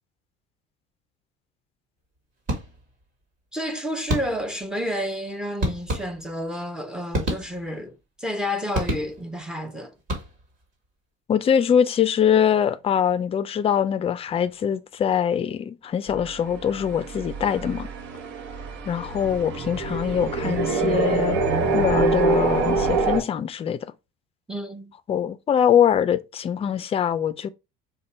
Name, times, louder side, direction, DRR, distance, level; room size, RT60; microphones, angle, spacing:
sound 1, 2.5-3.0 4.1-4.6 5.6-6.5 7.1-7.9 8.7-9.4 10.0-10.6, equal, 40° right, 1.9 m, -29 dB
voice 1, 3.5-9.9 24.5-24.9, equal, 5° right, 0.7 m, -30 dB
voice 2, 11.3-17.9 18.8-21.4 21.7-23.9 25.1-27.5, left 8 dB, 30° left, 0.4 m, -23 dB
sound 2, 16.1-23.2, right 4 dB, 65° right, 0.9 m, -25 dB
5.2 x 2.2 x 4.3 m
cardioid pair, 130°, 20 cm